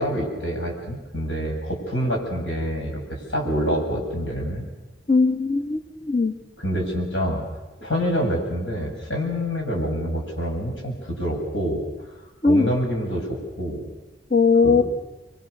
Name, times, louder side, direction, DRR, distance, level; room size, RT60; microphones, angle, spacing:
voice 1, 0.0-4.6 6.6-7.4 7.8-11.8 12.5-13.8 14.6-14.8, equal, 80° left, 0 dB, 7.9 m, -26 dB
voice 2, 5.1-6.3 12.4-12.7 14.3-14.8, left 4 dB, 50° left, 5 dB, 1.7 m, -19 dB
27.5 x 24.0 x 6.9 m, 1.1 s
head